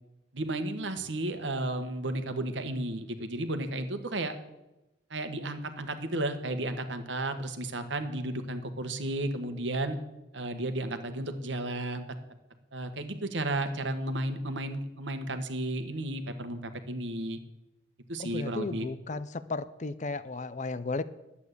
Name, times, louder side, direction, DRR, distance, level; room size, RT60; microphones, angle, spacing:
voice 1, 0.3-4.4 5.1-10.0 10.3-12.0 12.7-17.4 18.1-18.9, right 1 dB, 85° right, 9 dB, 1.4 m, -33 dB
voice 2, 18.2-21.0, left 3 dB, 40° left, 15 dB, 0.6 m, -34 dB
11.5 x 8.5 x 8.2 m, 0.97 s
head